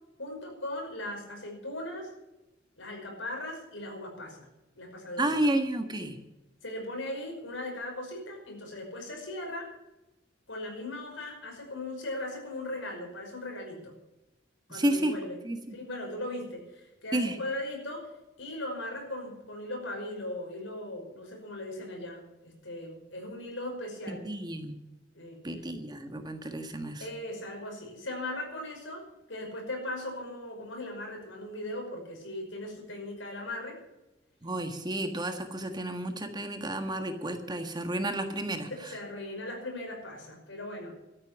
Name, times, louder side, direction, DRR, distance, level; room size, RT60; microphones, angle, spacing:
voice 1, 0.2-2.1 2.8-4.5 4.7-5.4 6.6-9.7 10.5-14.0 14.7-15.4 15.7-24.3 25.1-25.4 27.0-33.8 38.7-40.9, left 1 dB, 90° left, 1 dB, 5.6 m, -38 dB
voice 2, 5.2-6.2 14.7-15.1 15.4-15.8 17.1-17.4 24.1-24.7 25.4-27.0 34.4-38.7, right 1 dB, 25° right, 6 dB, 1.5 m, -31 dB
13.5 x 8.7 x 9.0 m, 1.0 s
head